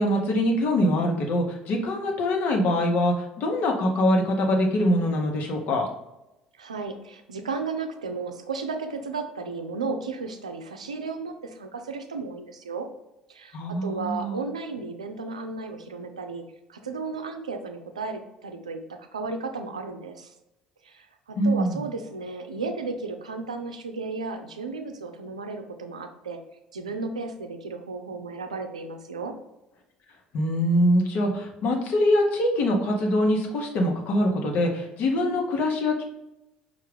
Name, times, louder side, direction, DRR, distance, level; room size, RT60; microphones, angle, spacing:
voice 1, 0.0-5.9 13.5-14.4 21.4-21.8 30.3-36.0, left 1 dB, 55° left, 1 dB, 1.0 m, -23 dB
voice 2, 6.6-12.9 13.3-16.4 16.7-20.3 20.8-26.4 26.7-29.3 35.1-35.4, right 4 dB, 85° right, 6 dB, 0.4 m, -34 dB
5.6 x 2.5 x 3.3 m, 0.93 s
figure-of-eight pair, 55°, 3 cm